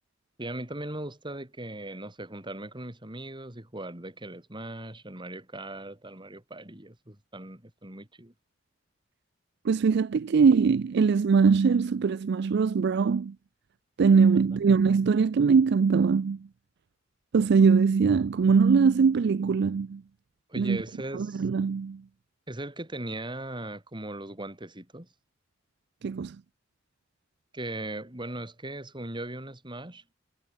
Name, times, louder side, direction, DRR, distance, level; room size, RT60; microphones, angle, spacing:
voice 1, 0.4-8.3 14.5-14.6 20.5-21.4 22.5-25.1 27.5-30.0, right 1 dB, 25° right, 3.9 m, -39 dB
voice 2, 9.6-13.4 14.0-16.5 17.3-20.0 20.6-20.8 21.1-22.0 26.0-26.4, right 5 dB, 60° right, 0.4 m, -22 dB
head